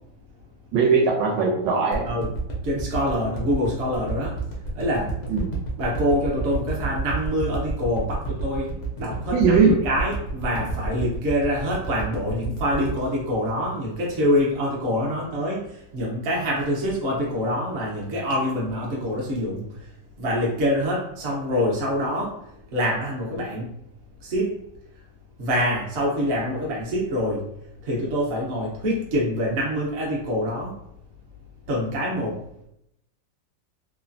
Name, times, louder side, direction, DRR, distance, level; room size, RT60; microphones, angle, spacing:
voice 1, 0.7-2.0 5.3-5.5 9.3-9.7, right 5 dB, 80° right, -1 dB, 1.3 m, -19 dB
sound 1, 1.9-14.2 14.7-14.8, right 3 dB, 80° left, 0.5 m, -30 dB
voice 2, 2.6-4.4 4.7-5.1 5.8-22.5 22.7-23.7 24.2-24.5 25.4-27.5 27.8-30.8 31.7-32.4, equal, 55° right, -3 dB, 0.8 m, -25 dB
3.1 x 2.1 x 2.5 m, 0.77 s
omnidirectional pair, 2.0 m